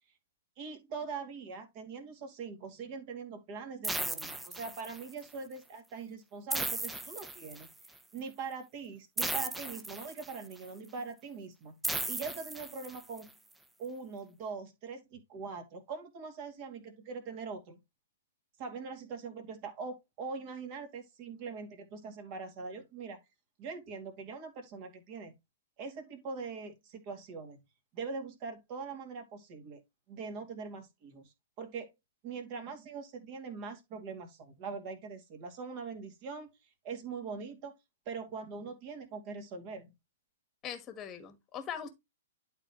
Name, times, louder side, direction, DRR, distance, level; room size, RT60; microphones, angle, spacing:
voice 1, 0.6-7.7 8.1-11.8 12.1-13.3 13.8-17.8 18.6-23.2 23.6-25.3 25.8-27.6 27.9-29.8 30.1-31.9 32.2-36.5 36.8-37.7 38.1-39.9, right 5 dB, 40° right, 2.2 m, -42 dB
sound 1, 3.8-5.2 6.5-7.9 9.2-10.5 11.8-13.2, right 2 dB, 5° right, 0.7 m, -36 dB
voice 2, 40.6-41.9, left 8 dB, 25° left, 1.4 m, -41 dB
11.5 x 4.0 x 2.9 m
figure-of-eight pair, 115°, 0 cm